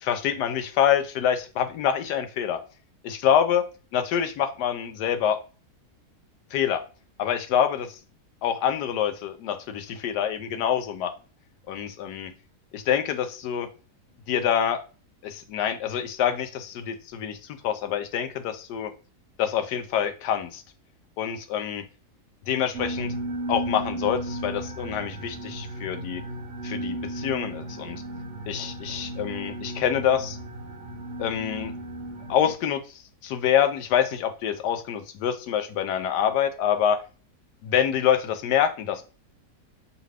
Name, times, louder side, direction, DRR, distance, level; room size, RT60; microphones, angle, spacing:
voice 1, 0.0-2.6 3.0-3.6 3.9-5.4 6.5-6.8 7.2-8.0 8.4-11.1 11.7-12.3 12.7-13.7 14.3-14.8 15.2-17.4 17.6-18.9 19.4-20.6 21.2-21.8 22.5-23.1 23.5-26.2 26.6-28.0 28.5-30.4 31.2-31.7 32.3-32.8 33.2-37.0 37.6-39.0, left 9 dB, 85° left, 9 dB, 1.2 m, -26 dB
sound 1, 22.7-32.5, right 1 dB, 55° right, 1.0 m, -35 dB
4.9 x 2.5 x 3.2 m, 0.35 s
omnidirectional pair, 1.7 m